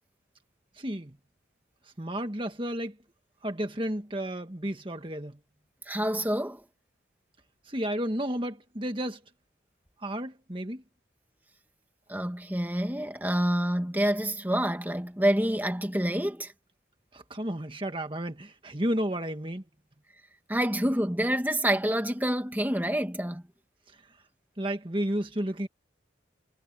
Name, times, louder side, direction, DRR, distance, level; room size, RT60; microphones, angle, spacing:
voice 1, 0.7-1.2 1.8-3.0 3.4-5.4 7.6-9.2 10.0-10.8 17.1-19.6 23.9-24.2 24.6-25.7, right 1 dB, 25° right, 1.7 m, -32 dB
voice 2, 5.9-6.6 12.1-16.5 20.5-23.4, right 1 dB, 10° right, 1.8 m, -27 dB
head